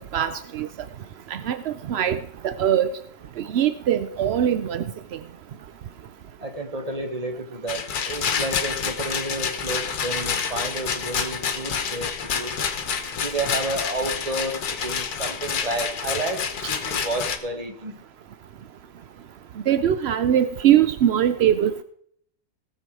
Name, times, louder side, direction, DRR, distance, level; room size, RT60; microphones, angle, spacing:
voice 1, 0.1-0.7 1.3-2.2 2.4-2.9 3.4-4.8 19.7-21.8, right 10 dB, 70° right, 12 dB, 0.6 m, -21 dB
voice 2, 6.4-12.5 13.2-16.4 16.7-18.0, right 2 dB, 25° right, 5 dB, 1.5 m, -31 dB
Rattle, 7.7-17.4, left 7 dB, 70° left, 1.6 m, -28 dB
17.5 x 6.9 x 4.7 m, 0.66 s
omnidirectional pair, 1.7 m